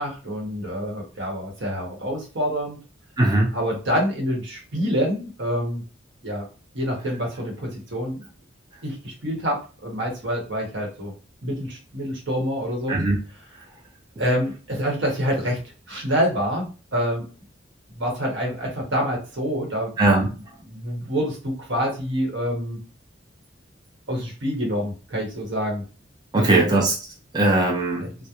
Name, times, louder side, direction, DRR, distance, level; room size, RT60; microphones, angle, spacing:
voice 1, 0.0-2.8 3.5-5.8 6.2-6.4 6.7-8.2 8.8-11.1 11.4-13.0 14.2-15.6 15.9-17.3 17.9-20.0 20.6-22.8 24.1-25.8 26.4-26.7 28.0-28.1, equal, 70° right, -1 dB, 1.0 m, -26 dB
voice 2, 3.2-3.5 12.9-13.2 20.0-20.3 26.3-26.9 27.3-28.1, right 2 dB, 20° right, -2 dB, 0.4 m, -19 dB
2.8 x 2.0 x 2.3 m, 0.35 s
head